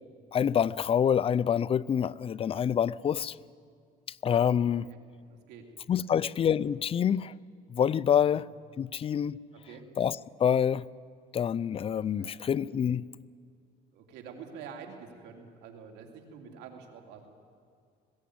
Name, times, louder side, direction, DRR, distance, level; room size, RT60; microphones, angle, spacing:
voice 1, 0.3-3.4 4.2-4.9 5.9-7.3 7.7-8.5 8.8-9.4 10.0-10.8 11.3-13.0, left 8 dB, 35° left, 0.4 m, -26 dB
voice 2, 5.3-5.7 8.2-8.4 9.7-9.8 12.2-12.5 13.9-17.3, right 6 dB, 90° right, 2.8 m, -47 dB
20.5 x 15.5 x 9.6 m
cardioid pair, 110°, 17 cm